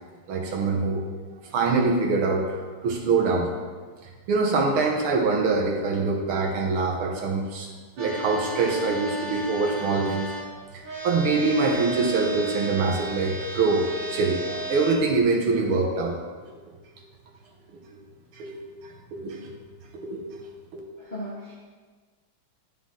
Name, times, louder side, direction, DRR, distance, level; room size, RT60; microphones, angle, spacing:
voice 1, 0.3-1.0 1.5-2.6 2.8-3.5 4.3-7.7 8.0-10.3 11.0-13.8 14.1-16.2 18.4-18.5 19.1-19.5 19.9-20.3 20.7-20.8, right 4 dB, 80° right, 0 dB, 2.0 m, -24 dB
sound 1, 8.0-10.4 10.8-15.0, right 2 dB, 60° right, 1.8 m, -34 dB
voice 2, 21.0-21.6, equal, 40° left, -5 dB, 0.7 m, -37 dB
9.6 x 5.8 x 3.8 m, 1.5 s
omnidirectional pair, 2.3 m